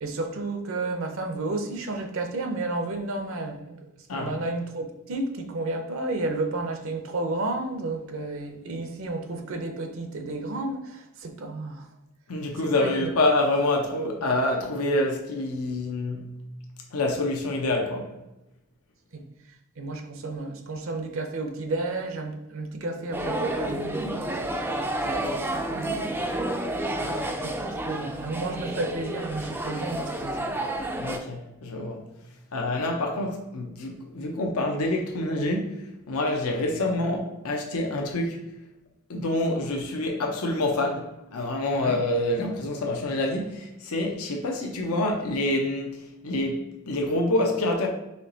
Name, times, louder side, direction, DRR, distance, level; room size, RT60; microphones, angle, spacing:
voice 1, 0.0-3.9 4.1-11.9 12.6-13.1 19.1-19.2 19.8-26.2 27.4-30.5 41.7-42.0, right 2 dB, 60° right, 0.6 m, -32 dB
voice 2, 12.3-16.3 16.9-18.1 27.0-27.4 31.0-32.0 32.5-38.4 39.1-46.0 46.2-47.9, left 2 dB, 80° left, 0.7 m, -27 dB
sound 1, 23.1-31.2, right 1 dB, 10° right, 0.3 m, -30 dB
4.5 x 3.0 x 3.8 m
head